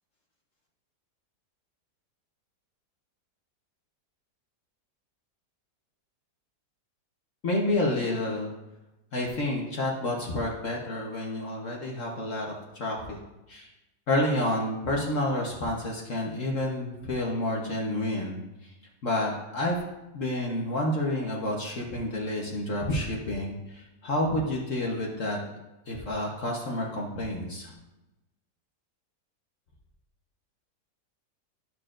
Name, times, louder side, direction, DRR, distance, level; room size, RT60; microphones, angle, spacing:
voice 1, 7.4-8.5 9.1-12.5 12.7-13.2 13.5-13.7 14.1-18.4 19.0-19.8 20.1-25.4 25.9-27.7, left 1 dB, 50° left, -2 dB, 1.4 m, -29 dB
12.5 x 6.5 x 2.5 m, 0.99 s
omnidirectional pair, 1.8 m